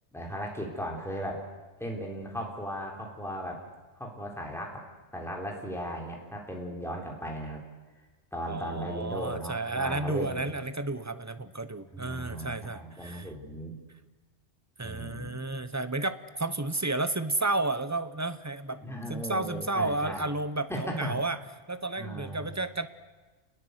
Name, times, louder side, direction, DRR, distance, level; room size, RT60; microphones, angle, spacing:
voice 1, 0.1-1.4 1.8-3.6 4.0-4.9 5.1-7.6 8.3-10.6 11.9-13.7 14.8-15.3 18.8-20.3 20.7-21.2 22.0-22.5, equal, ahead, 0 dB, 3.8 m, -37 dB
voice 2, 8.5-13.3 14.8-21.4 21.7-22.9, right 2 dB, 15° right, 12 dB, 0.9 m, -32 dB
29.0 x 20.5 x 8.1 m, 1.2 s
omnidirectional pair, 1.2 m